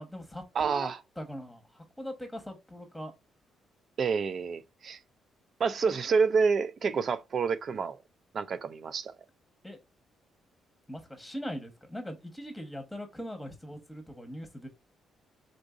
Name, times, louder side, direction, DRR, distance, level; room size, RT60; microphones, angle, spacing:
voice 1, 0.0-0.9 1.2-3.1 7.7-7.8 9.6-9.8 10.9-14.7, equal, 5° left, 1.1 m, -41 dB
voice 2, 0.6-1.0 4.0-5.0 5.6-8.0 8.3-9.1, right 5 dB, 50° right, 0.4 m, -28 dB
3.8 x 2.6 x 2.4 m
cardioid pair, 90°, 0 cm